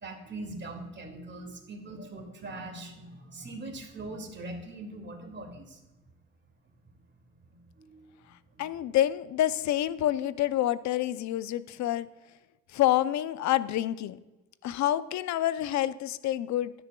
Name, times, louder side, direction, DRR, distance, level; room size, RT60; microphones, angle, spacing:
voice 1, 0.0-5.8 7.5-8.7, right 2 dB, 35° right, 2 dB, 2.2 m, -42 dB
voice 2, 8.6-12.1 12.7-14.2 14.6-16.7, left 13 dB, 70° left, 16 dB, 0.5 m, -27 dB
12.5 x 10.0 x 2.2 m, 1.1 s
cardioid pair, 90°, 30 cm